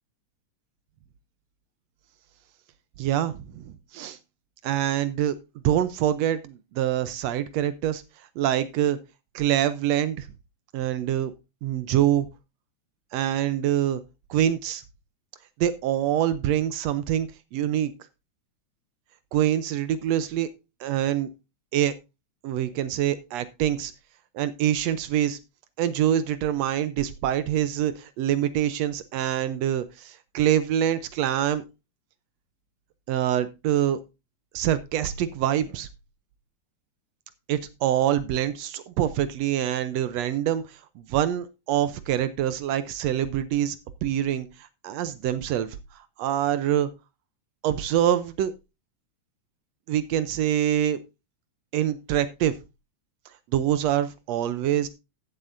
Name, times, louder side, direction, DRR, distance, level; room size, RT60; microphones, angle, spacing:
voice 1, 3.0-4.2 4.6-5.4 5.6-8.0 8.4-9.0 9.3-10.3 10.7-11.3 11.6-12.3 13.1-14.0 14.3-14.8 15.6-17.9 19.3-20.5 20.8-21.3 21.7-21.9 22.4-23.9 24.3-25.4 25.8-31.6 33.1-34.0 34.5-35.9 37.5-43.8 44.0-44.5 44.8-45.8 46.2-46.9 47.6-48.5 49.9-51.0 51.7-52.5 53.5-54.9, right 11 dB, 75° right, 14 dB, 1.6 m, -25 dB
15.0 x 7.9 x 2.6 m, 0.25 s
omnidirectional pair, 3.5 m